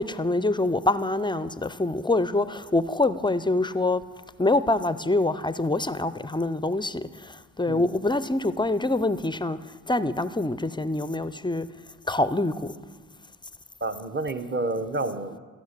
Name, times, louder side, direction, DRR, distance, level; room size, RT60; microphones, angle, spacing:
voice 1, 0.0-4.0 4.4-11.7 12.1-12.7, left 2 dB, 15° left, 0.4 m, -25 dB
voice 2, 13.8-15.4, right 2 dB, 30° right, 0.9 m, -29 dB
14.5 x 5.2 x 6.6 m
supercardioid pair, 50°, 35 cm